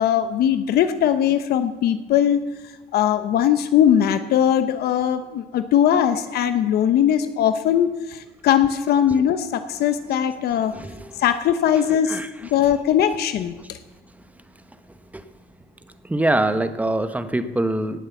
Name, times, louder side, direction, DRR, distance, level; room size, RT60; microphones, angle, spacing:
voice 1, 0.0-2.4 2.9-10.7 11.2-12.2 12.5-13.8, left 9 dB, 70° left, 10 dB, 0.9 m, -20 dB
voice 2, 10.7-11.1 11.9-12.3 13.6-13.7 15.1-15.2 16.0-18.0, right 1 dB, 10° right, 10 dB, 1.0 m, -24 dB
18.0 x 7.5 x 7.1 m, 1.2 s
cardioid pair, 110°, 17 cm